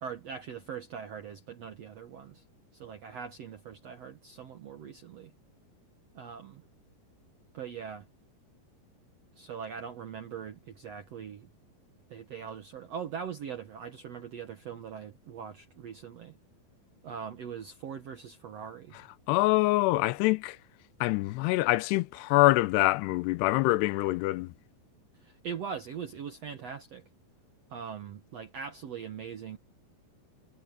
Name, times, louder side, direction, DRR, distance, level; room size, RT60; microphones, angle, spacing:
voice 1, 0.0-2.4 2.7-5.3 6.1-6.6 7.5-8.1 9.4-11.5 12.1-16.4 17.0-19.0 25.1-27.1 27.7-29.6, right 7 dB, 70° right, 1.5 m, -41 dB
voice 2, 19.3-20.6 21.0-24.5, left 19 dB, 90° left, 2.8 m, -25 dB
omnidirectional pair, 4.7 m